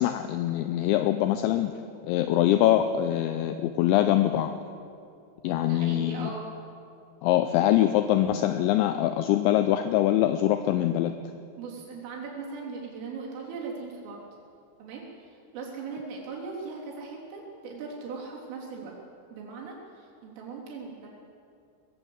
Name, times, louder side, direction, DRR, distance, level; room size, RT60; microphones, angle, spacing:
voice 1, 0.0-1.7 2.0-4.5 5.4-6.3 7.2-11.1, left 12 dB, 80° left, 8 dB, 2.7 m, -23 dB
voice 2, 5.6-6.5 11.6-14.2 14.8-18.9 19.3-21.1, right 4 dB, 80° right, -3 dB, 6.0 m, -39 dB
21.0 x 15.5 x 8.0 m, 2.5 s
omnidirectional pair, 5.8 m